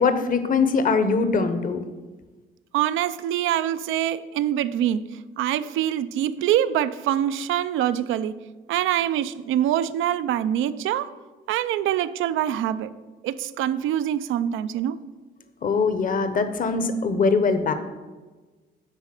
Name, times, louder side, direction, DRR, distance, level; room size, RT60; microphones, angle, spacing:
voice 1, 0.0-1.8 15.6-17.7, left 4 dB, 45° left, 10 dB, 0.8 m, -22 dB
voice 2, 2.7-5.1 5.4-8.4 8.7-11.1 11.5-12.9 13.2-15.0, right 11 dB, 85° right, 14 dB, 0.5 m, -24 dB
10.0 x 4.0 x 7.5 m, 1.3 s
cardioid pair, 90°, 20 cm